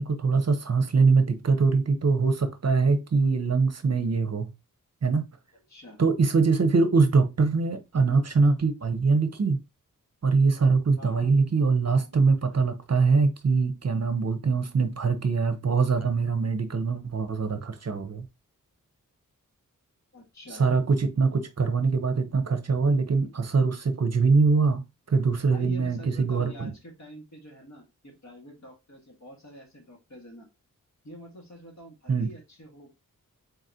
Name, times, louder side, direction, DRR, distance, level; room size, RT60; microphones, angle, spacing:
voice 1, 0.0-4.5 5.0-5.2 6.0-9.6 10.2-18.2 20.6-24.8 25.1-26.7 32.1-32.3, right 4 dB, 50° right, 0.7 m, -23 dB
voice 2, 5.7-6.0 11.0-11.3 20.1-20.7 23.1-23.3 25.5-30.5 31.0-32.9, equal, 55° left, 1.8 m, -46 dB
4.0 x 3.9 x 2.8 m
wide cardioid pair, 90°, 33 cm